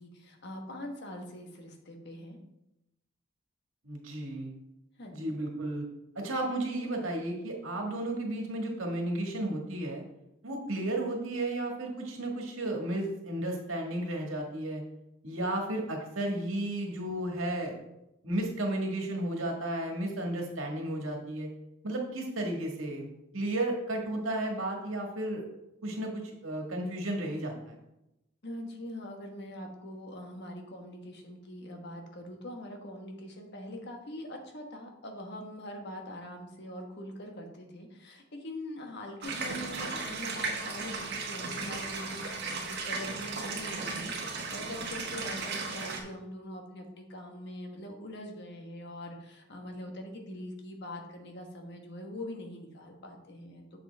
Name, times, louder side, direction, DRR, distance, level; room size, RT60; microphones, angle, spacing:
voice 1, 0.0-2.4 5.0-5.2 28.4-53.8, left 1 dB, 55° left, 2 dB, 1.3 m, -43 dB
voice 2, 3.8-4.5 5.1-5.9 6.2-10.0 10.4-14.8 15.2-17.8 18.2-21.5 21.8-23.1 23.3-25.4 25.8-27.8, right 1 dB, 80° right, 1 dB, 1.7 m, -33 dB
sound 1, 39.2-46.0, right 4 dB, 55° right, 1.4 m, -36 dB
7.3 x 6.9 x 3.4 m, 0.88 s
head